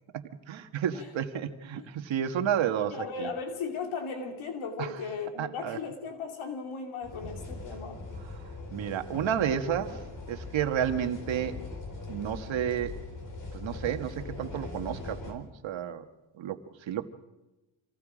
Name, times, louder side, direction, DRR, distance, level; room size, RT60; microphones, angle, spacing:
voice 1, 0.1-3.3 4.8-5.0 5.4-5.8 8.3-8.4 8.7-10.0 10.3-11.6 12.1-13.0 13.5-16.0 16.3-17.1, right 9 dB, 70° right, 7 dB, 1.6 m, -31 dB
voice 2, 2.9-8.0, left 5 dB, 85° left, 3 dB, 2.8 m, -36 dB
sound 1, 7.0-15.3, left 3 dB, 40° left, 4.6 m, -41 dB
27.0 x 19.0 x 5.1 m, 1.0 s
cardioid pair, 120°, 47 cm